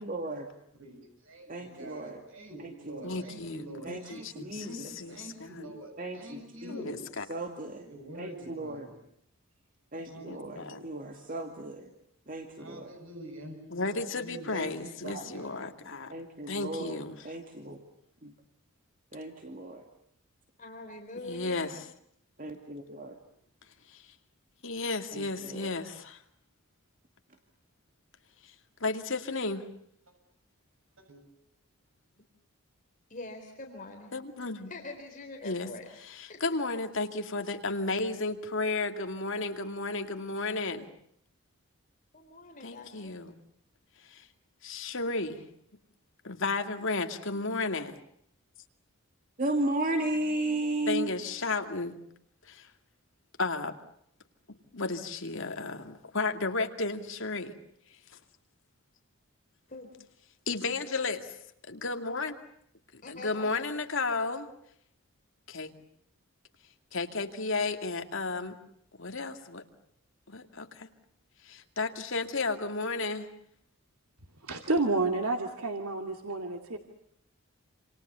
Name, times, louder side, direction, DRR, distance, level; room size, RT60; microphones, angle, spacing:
voice 1, 0.0-0.5 1.5-2.2 2.6-3.3 3.8-4.9 6.0-6.9 7.3-7.9 8.1-8.9 9.9-11.9 12.3-12.9 14.5-15.3 16.1-17.0 17.2-17.8 18.2-18.3 19.1-19.8 22.4-23.2 25.1-25.8 49.4-51.2, right 2 dB, 40° right, 4 dB, 2.4 m, -35 dB
voice 2, 0.7-7.0 7.9-9.0 10.0-10.9 12.6-15.7 31.1-31.2, right 1 dB, 65° right, 3 dB, 7.2 m, -46 dB
voice 3, 3.0-5.7 6.7-7.2 10.2-10.8 13.7-16.1 16.5-17.1 21.3-21.7 23.9-24.0 24.6-26.2 28.8-29.6 34.1-34.7 35.4-35.7 36.1-40.9 42.6-43.3 44.0-44.3 44.6-45.4 46.2-48.0 50.9-52.0 52.4-52.7 53.4-53.7 54.7-57.5 60.5-61.3 61.7-62.4 62.9-64.5 65.5-65.7 66.9-68.6 69.0-69.6 70.3-70.9 71.4-73.3, left 3 dB, 60° left, 6 dB, 2.4 m, -33 dB
voice 4, 20.6-21.8 33.1-34.2 34.7-35.9 36.3-36.4 42.1-43.2 49.9-51.0 59.7-59.9 63.0-63.6, left 2 dB, 35° left, 2 dB, 4.0 m, -44 dB
voice 5, 74.4-76.8, right 3 dB, 90° right, 4 dB, 2.4 m, -30 dB
28.0 x 28.0 x 7.0 m, 0.72 s
head